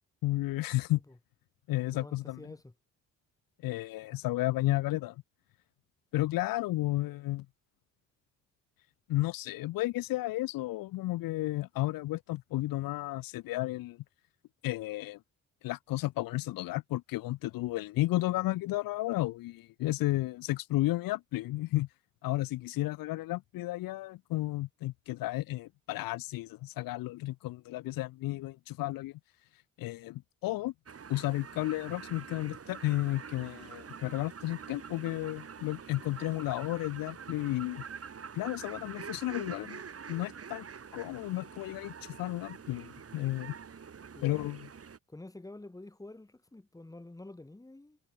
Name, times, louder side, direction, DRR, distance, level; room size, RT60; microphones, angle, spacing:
voice 1, 0.2-1.0 1.7-2.4 3.6-5.2 6.1-7.5 9.1-14.0 14.6-15.2 15.6-21.9 22.2-29.2 29.8-30.7 31.1-37.8 38.3-39.8 40.1-40.7 40.9-43.5 44.2-44.6, left 18 dB, 85° left, 0.9 m, -33 dB
voice 2, 1.9-2.7 44.1-44.5 45.1-48.0, left 2 dB, 10° left, 2.0 m, -48 dB
sound 1, 30.9-45.0, right 6 dB, 45° right, 5.7 m, -46 dB
cardioid pair, 85°, 33 cm